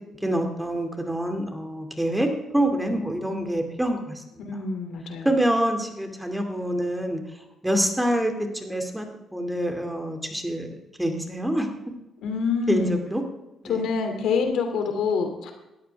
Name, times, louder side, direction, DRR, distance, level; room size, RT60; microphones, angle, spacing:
voice 1, 0.2-4.2 5.2-7.2 7.6-9.1 9.3-10.7 11.0-11.7 12.7-13.2 13.6-13.8, right 1 dB, 5° right, 4 dB, 2.5 m, -26 dB
voice 2, 4.4-5.3 12.2-13.0 13.7-15.5, left 5 dB, 80° left, 5 dB, 2.8 m, -26 dB
18.5 x 13.5 x 3.5 m, 0.95 s
cardioid pair, 90°, 0 cm